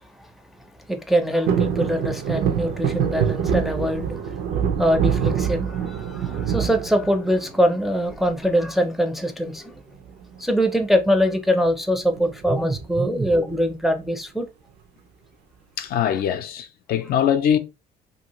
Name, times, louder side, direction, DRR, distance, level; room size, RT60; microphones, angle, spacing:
voice 1, 0.9-4.4 4.8-9.8 10.4-14.5, equal, ahead, 0.4 m, -23 dB
sound 1, 1.4-7.6 8.1-8.7 9.9-10.4 10.6-10.7 11.0-11.3 12.1-13.1 13.5-13.6, right 8 dB, 75° right, 0.6 m, -25 dB
voice 2, 15.8-17.6, left 9 dB, 65° left, 0.4 m, -22 dB
2.7 x 2.4 x 2.9 m
cardioid pair, 110°, 17 cm